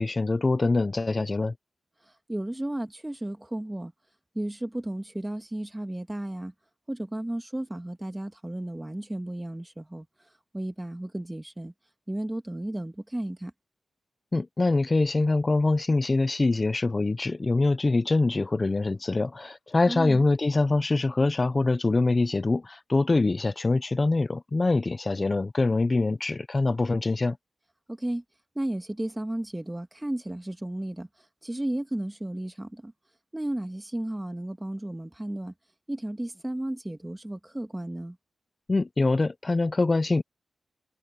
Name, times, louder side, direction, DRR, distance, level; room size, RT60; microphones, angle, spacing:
voice 1, 0.0-1.5 14.3-27.4 38.7-40.2, left 3 dB, 30° left, 0.5 m, -24 dB
voice 2, 2.0-3.9 4.3-6.5 6.9-10.1 10.5-11.7 12.1-13.5 19.9-20.2 27.9-28.2 28.6-32.9 33.3-35.5 35.9-38.2, right 1 dB, 10° right, 1.9 m, -33 dB
wide cardioid pair, 125°, 0 cm